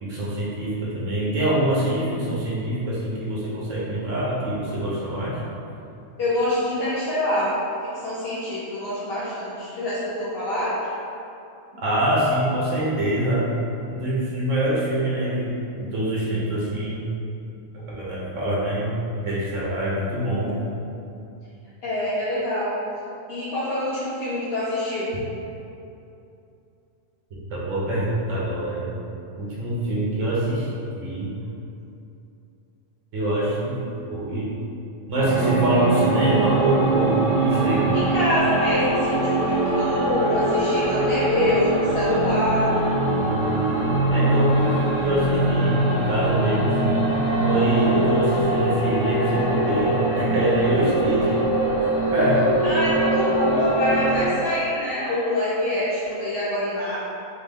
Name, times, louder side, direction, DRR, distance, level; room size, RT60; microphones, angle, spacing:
voice 1, 0.0-5.4 11.8-13.5 13.9-17.0 17.7-18.9 19.2-20.6 27.5-28.9 29.3-30.7 31.0-31.3 33.1-33.8 34.1-34.5 35.1-37.9 43.2-43.7 44.1-47.2 47.4-51.4 52.1-52.5, right 1 dB, 70° right, -6 dB, 1.3 m, -24 dB
voice 2, 6.2-7.6 7.9-10.8 21.8-22.8 23.3-25.1 37.9-42.7 52.6-57.0, left 1 dB, 55° left, -10 dB, 0.8 m, -25 dB
sound 1, 35.2-54.2, right 2 dB, 40° right, 1.7 m, -22 dB
4.8 x 2.2 x 3.5 m, 2.7 s
omnidirectional pair, 1.4 m